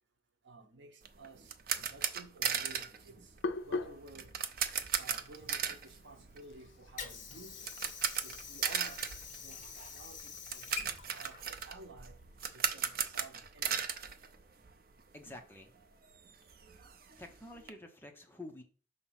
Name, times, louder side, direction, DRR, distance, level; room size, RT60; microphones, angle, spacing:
voice 1, 0.4-1.5 1.8-3.2 3.6-4.3 5.0-7.7 8.2-9.0 9.4-9.6 9.9-12.2 12.5-13.8, right 3 dB, 75° right, 0.8 m, -53 dB
sound 1, 1.0-15.0 15.3-15.4 15.8-15.9 16.2-17.7, right 7 dB, 50° right, 0.5 m, -37 dB
Hands, 2.6-8.6, left 3 dB, 80° left, 0.4 m, -43 dB
Water / Sink (filling or washing), 6.5-12.5, left 6 dB, 40° left, 1.0 m, -47 dB
voice 2, 15.1-15.7 17.2-18.6, left 1 dB, 10° left, 0.6 m, -49 dB
6.0 x 2.9 x 5.6 m
head